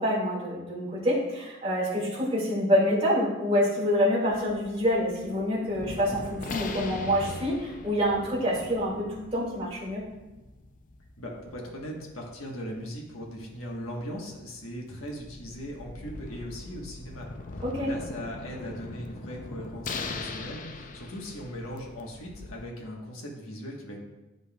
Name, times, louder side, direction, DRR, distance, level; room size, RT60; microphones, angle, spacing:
voice 1, 0.0-10.0 17.6-17.9, equal, 30° right, -6 dB, 2.2 m, -26 dB
sound 1, 4.2-22.7, left 3 dB, 40° left, 0.5 m, -41 dB
voice 2, 11.2-24.0, equal, 75° left, -1 dB, 1.3 m, -39 dB
9.4 x 5.3 x 2.3 m, 1.1 s
head